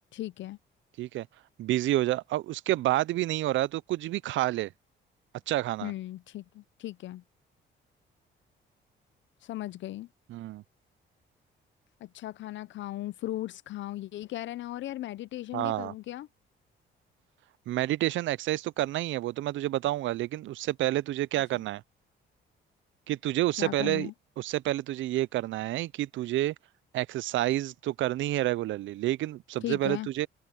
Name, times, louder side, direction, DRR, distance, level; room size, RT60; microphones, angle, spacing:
voice 1, 0.1-0.6 5.8-7.2 9.4-10.1 12.0-16.3 23.6-24.1 29.6-30.1, left 14 dB, 70° left, 0.5 m, -37 dB
voice 2, 1.6-4.7 5.5-5.9 10.3-10.6 15.5-15.9 17.7-21.8 23.1-24.1 24.4-26.5 26.9-30.3, right 15 dB, 75° right, 0.5 m, -29 dB
open air
cardioid pair, 90°, 20 cm